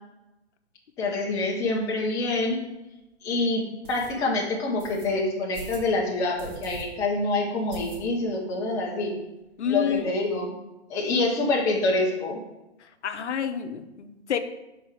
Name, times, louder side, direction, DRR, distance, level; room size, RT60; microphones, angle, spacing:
voice 1, 1.0-2.6 3.2-9.1 9.7-10.6 10.9-12.4, left 2 dB, 10° left, -3 dB, 0.6 m, -26 dB
sound 1, 2.4-2.5 3.0-3.1 3.8-4.1 4.8-5.1 5.5-5.9 6.4-6.8 7.1-7.2 7.7-8.4 8.7-8.8 9.0-9.1 9.4-10.0, right 2 dB, 45° right, 1.6 m, -42 dB
voice 2, 9.6-10.1 13.0-14.4, left 8 dB, 80° left, 8 dB, 0.7 m, -28 dB
5.4 x 3.9 x 4.6 m, 0.97 s
hypercardioid pair, 150°, 34 cm